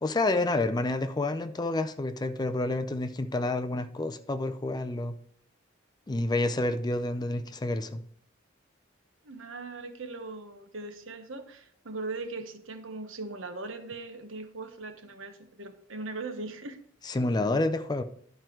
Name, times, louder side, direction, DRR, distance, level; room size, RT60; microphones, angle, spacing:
voice 1, 0.0-5.2 6.1-8.0 17.1-18.0, left 2 dB, 20° left, 10 dB, 0.4 m, -29 dB
voice 2, 9.2-16.8, right 3 dB, 80° right, 7 dB, 1.1 m, -39 dB
11.5 x 4.5 x 4.5 m, 0.63 s
head